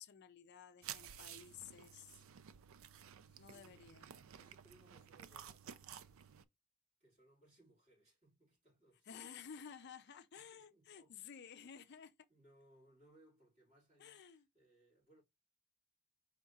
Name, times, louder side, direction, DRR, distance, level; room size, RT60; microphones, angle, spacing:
voice 1, 0.0-2.2 3.4-4.1 9.1-12.1 14.0-14.5, left 7 dB, 55° left, 0.5 m, -54 dB
sound 1, 0.8-6.4, right 9 dB, 80° right, 0.4 m, -53 dB
voice 2, 3.2-3.8 4.2-6.4 7.0-9.2 10.3-11.4 11.9-12.0 12.3-15.2, right 1 dB, 35° right, 3.5 m, -69 dB
4.8 x 3.6 x 2.8 m
head